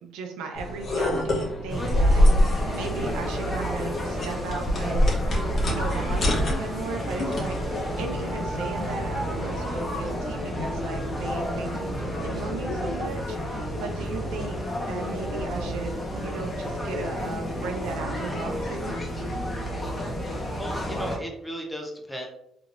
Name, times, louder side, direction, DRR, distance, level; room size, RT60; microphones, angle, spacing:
voice 1, 0.0-5.3 5.7-14.6 14.9-18.9, right 4 dB, 85° right, 3 dB, 0.6 m, -36 dB
sound 1, 0.5-7.7, left 1 dB, 50° left, 1.3 m, -25 dB
sound 2, 1.7-21.2, equal, 30° left, 1.1 m, -31 dB
voice 2, 20.6-22.3, right 1 dB, 10° left, 1 dB, 0.9 m, -35 dB
3.4 x 3.1 x 2.5 m, 0.77 s
supercardioid pair, 75°, 0 cm